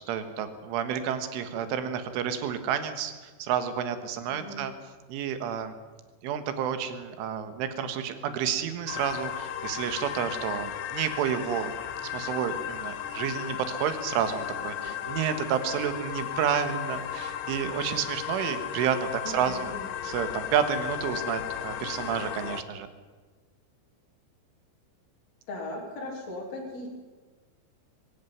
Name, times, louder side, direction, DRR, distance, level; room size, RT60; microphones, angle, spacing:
voice 1, 0.0-3.1 3.4-4.7 5.1-5.7 6.2-11.7 12.1-19.7 20.0-22.9, right 8 dB, 90° right, 9 dB, 4.0 m, -30 dB
voice 2, 4.3-4.7 14.6-14.9 19.2-19.9 25.5-26.9, left 2 dB, 35° left, -2 dB, 4.0 m, -38 dB
sound 1, 8.9-22.6, left 10 dB, 75° left, 2.0 m, -35 dB
23.0 x 13.5 x 9.5 m, 1.4 s
omnidirectional pair, 5.5 m